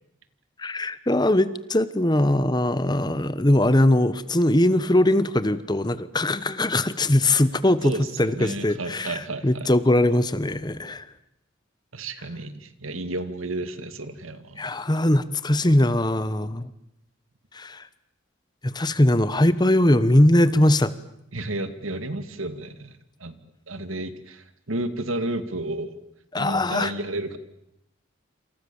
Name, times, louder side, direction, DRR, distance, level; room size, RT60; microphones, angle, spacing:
voice 1, 0.6-7.9 8.2-11.0 14.6-16.7 17.5-17.8 18.6-20.9 26.3-26.9, left 1 dB, 20° left, 15 dB, 1.0 m, -21 dB
voice 2, 7.8-9.7 11.9-14.6 21.3-22.9 23.2-23.4 23.7-26.0 26.4-27.4, right 2 dB, 90° right, 11 dB, 2.3 m, -32 dB
28.5 x 27.5 x 7.1 m, 0.81 s
head